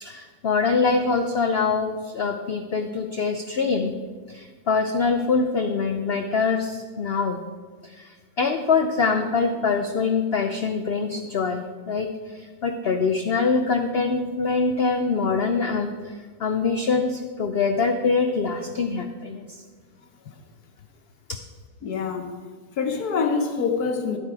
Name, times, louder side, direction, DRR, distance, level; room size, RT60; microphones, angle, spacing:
voice 1, 0.0-3.9 4.3-7.4 7.8-19.6 21.3-21.4, left 4 dB, 85° left, 6 dB, 0.5 m, -24 dB
voice 2, 21.8-22.3 22.8-24.2, left 5 dB, 65° left, 5 dB, 1.3 m, -25 dB
12.0 x 8.0 x 4.7 m, 1.5 s
omnidirectional pair, 1.8 m